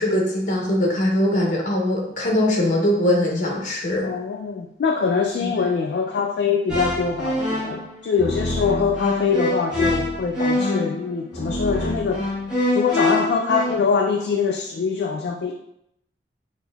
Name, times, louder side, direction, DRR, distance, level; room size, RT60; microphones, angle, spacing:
voice 1, 0.0-4.1 5.4-5.6, left 1 dB, 45° left, -1 dB, 0.8 m, -21 dB
voice 2, 4.0-12.3 12.7-15.5, left 5 dB, 65° left, 2 dB, 0.3 m, -23 dB
sound 1, 6.7-13.8, left 1 dB, 5° right, 1.2 m, -25 dB
5.2 x 2.6 x 2.3 m, 0.78 s
head